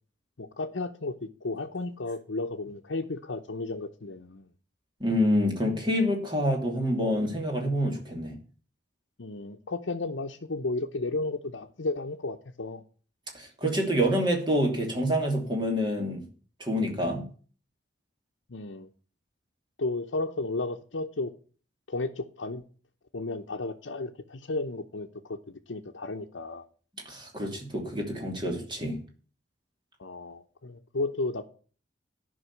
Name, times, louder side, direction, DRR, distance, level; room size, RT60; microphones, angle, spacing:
voice 1, 0.4-4.4 5.7-5.8 9.2-12.8 18.5-18.9 19.8-21.3 21.9-22.6 23.1-25.4 25.7-26.7 30.0-31.5, left 2 dB, 90° left, 0.8 m, -33 dB
voice 2, 5.0-8.3 13.3-16.2 16.6-17.3 27.0-29.0, equal, 25° right, 2.9 m, -27 dB
11.0 x 5.5 x 8.4 m
head